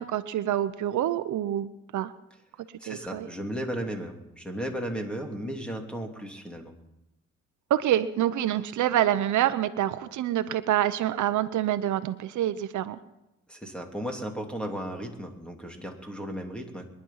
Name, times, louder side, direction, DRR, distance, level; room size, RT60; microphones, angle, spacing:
voice 1, 0.0-2.1 2.9-3.3 7.7-13.0, right 12 dB, 75° right, 12 dB, 0.9 m, -26 dB
voice 2, 2.8-6.7 13.5-16.9, equal, 5° left, 3 dB, 2.9 m, -35 dB
22.5 x 11.0 x 5.7 m, 0.94 s
cardioid pair, 90°, 30 cm